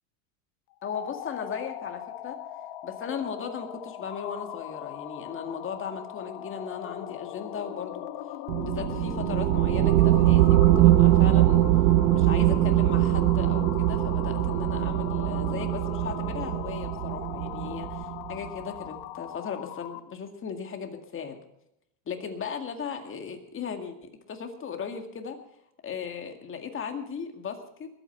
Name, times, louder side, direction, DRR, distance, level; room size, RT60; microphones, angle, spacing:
sound 1, 0.7-20.1, left 13 dB, 50° left, 1.2 m, -39 dB
voice 1, 0.8-2.4 2.8-8.1 8.6-11.7 12.1-21.4 22.1-25.4 25.8-27.9, left 6 dB, 25° left, 5 dB, 2.0 m, -37 dB
sound 2, 8.5-18.5, right 14 dB, 90° right, 1.0 m, -22 dB
21.0 x 8.9 x 5.8 m, 0.79 s
supercardioid pair, 130°, 49 cm